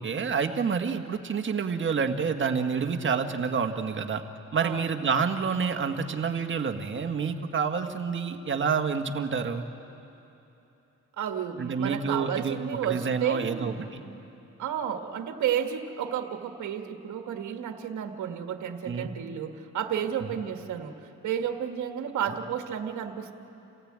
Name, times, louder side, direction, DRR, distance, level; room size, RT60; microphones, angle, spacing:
voice 1, 0.0-4.2 4.5-9.7 11.6-12.5 12.8-14.0 18.8-19.1 20.2-20.3, right 5 dB, 40° right, 6 dB, 1.6 m, -28 dB
voice 2, 11.2-14.2 14.6-23.3, right 9 dB, 70° right, 5 dB, 1.6 m, -32 dB
28.0 x 16.0 x 8.8 m, 2.9 s
cardioid pair, 90°, 30 cm